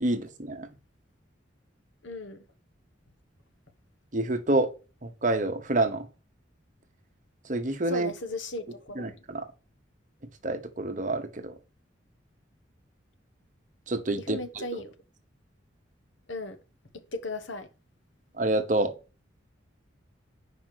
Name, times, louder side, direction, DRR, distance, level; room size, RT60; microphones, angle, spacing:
voice 1, 0.0-0.7 4.1-4.7 5.0-6.1 7.5-8.1 8.9-9.4 10.4-11.6 13.9-14.7 18.4-18.9, right 2 dB, 40° right, 1.0 m, -28 dB
voice 2, 2.0-2.4 7.9-9.0 14.3-14.9 16.3-16.6 17.1-17.7, left 2 dB, 80° left, 1.2 m, -36 dB
5.1 x 5.1 x 6.4 m
head